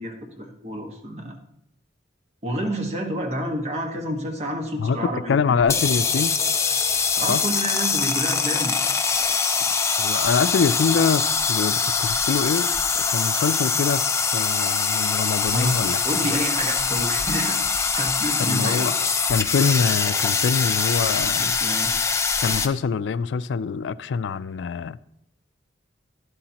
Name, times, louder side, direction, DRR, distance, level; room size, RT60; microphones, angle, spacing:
voice 1, 0.0-1.4 2.4-5.6 7.2-8.7 15.5-15.8 16.0-18.9 21.4-21.9, right 1 dB, 35° right, 1.4 m, -29 dB
voice 2, 4.8-6.4 7.3-7.4 10.0-12.7 12.9-14.1 14.3-16.2 18.4-18.9 19.3-21.6 22.4-25.0, left 5 dB, 80° left, 0.3 m, -24 dB
sound 1, 5.6-22.7, left 5 dB, 15° left, 0.5 m, -23 dB
11.5 x 11.0 x 2.9 m
head